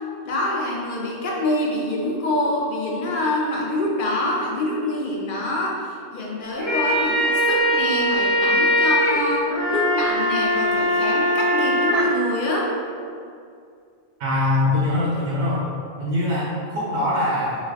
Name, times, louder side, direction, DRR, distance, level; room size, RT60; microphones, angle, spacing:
voice 1, 0.2-12.7, left 1 dB, 60° left, -3 dB, 0.6 m, -25 dB
sound 1, 6.4-12.0, equal, 35° right, 0.6 m, -21 dB
voice 2, 14.2-15.6 16.0-17.6, left 1 dB, 90° right, -7 dB, 0.9 m, -22 dB
3.1 x 2.1 x 3.4 m, 2.3 s
omnidirectional pair, 1.1 m